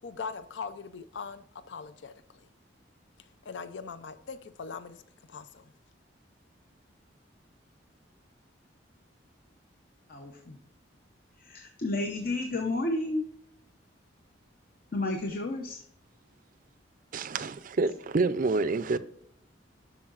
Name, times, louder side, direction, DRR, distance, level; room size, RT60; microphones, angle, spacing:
voice 1, 0.0-2.1 3.5-5.0 5.3-5.7, left 5 dB, 65° left, 0.5 m, -40 dB
voice 2, 10.1-10.6 11.4-13.2 14.9-15.8, left 2 dB, 50° left, 0.8 m, -31 dB
voice 3, 17.1-19.0, right 3 dB, 45° right, 0.4 m, -28 dB
12.0 x 4.7 x 2.5 m
head